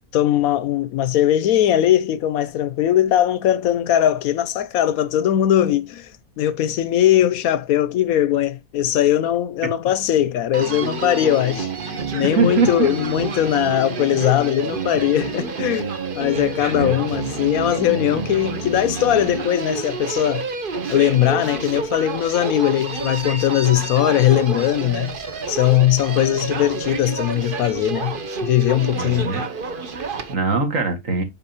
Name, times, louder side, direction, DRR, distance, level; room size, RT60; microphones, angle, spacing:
voice 1, 0.1-6.1 6.4-20.4 20.9-25.1 25.5-28.1 28.4-29.3, left 12 dB, 75° left, 1.0 m, -20 dB
Human voice, 10.5-30.3, right 5 dB, 40° right, 1.0 m, -29 dB
voice 2, 12.4-12.9 16.7-17.2 28.9-29.6 29.9-31.2, right 4 dB, 55° right, 2.1 m, -23 dB
8.0 x 5.3 x 2.8 m
omnidirectional pair, 1.6 m